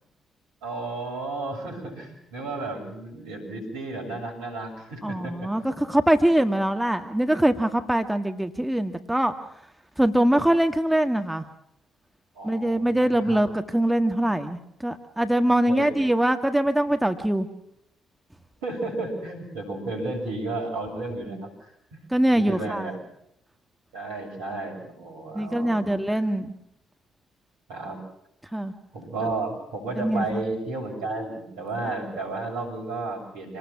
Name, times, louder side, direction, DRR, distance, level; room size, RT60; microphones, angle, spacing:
voice 1, 0.6-5.7 12.4-13.4 15.7-16.0 18.6-22.0 22.3-23.0 23.9-26.2 27.7-28.0 28.9-33.6, right 2 dB, 75° right, 1 dB, 7.4 m, -33 dB
voice 2, 5.0-9.3 10.0-11.5 12.4-17.5 22.1-22.9 25.3-26.5 28.5-28.7 30.0-30.4, right 1 dB, 10° right, 7 dB, 1.9 m, -23 dB
27.5 x 19.5 x 6.0 m, 0.77 s
figure-of-eight pair, 45°, 0 cm